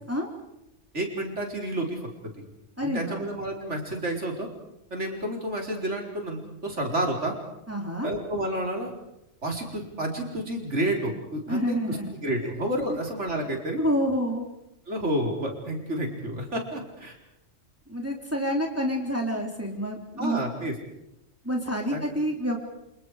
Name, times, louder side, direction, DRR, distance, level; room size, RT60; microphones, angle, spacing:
voice 1, 0.9-2.3 2.8-4.5 4.9-7.3 8.0-8.9 9.4-13.8 14.9-17.2 20.2-20.7 21.9-22.0, right 1 dB, 60° right, 1 dB, 4.8 m, -30 dB
voice 2, 2.8-3.3 7.7-8.1 11.5-12.1 12.4-12.5 13.8-14.4 17.9-20.4 21.4-22.6, equal, 10° right, 1 dB, 3.3 m, -28 dB
29.0 x 27.5 x 5.0 m, 0.87 s
omnidirectional pair, 1.4 m